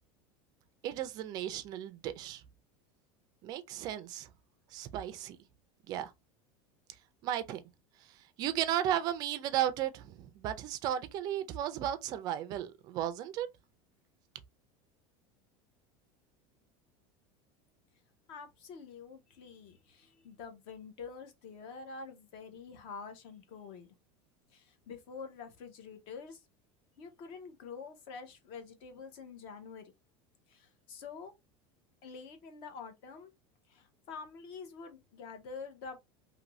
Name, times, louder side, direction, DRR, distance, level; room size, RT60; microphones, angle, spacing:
voice 1, 0.8-2.4 3.4-4.3 4.7-5.4 5.9-6.1 7.2-7.6 8.4-13.5, right 11 dB, 30° right, 0.3 m, -34 dB
voice 2, 18.3-23.9 24.5-26.4 27.0-29.9 30.5-31.3 32.0-33.3 33.7-36.0, left 5 dB, 40° left, 0.7 m, -47 dB
2.6 x 2.6 x 2.9 m
cardioid pair, 175°, 13 cm